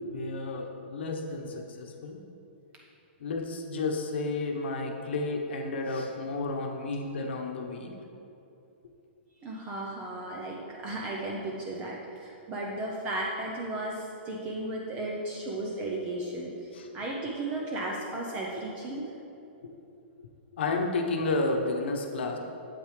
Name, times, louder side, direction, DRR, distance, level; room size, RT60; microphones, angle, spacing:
voice 1, 0.1-2.2 3.2-7.9 16.7-16.9 20.5-22.4, left 3 dB, 65° left, 3 dB, 1.1 m, -31 dB
voice 2, 9.4-19.0, right 2 dB, 20° right, -2 dB, 0.6 m, -35 dB
8.6 x 8.3 x 3.3 m, 2.8 s
hypercardioid pair, 165°, 6 cm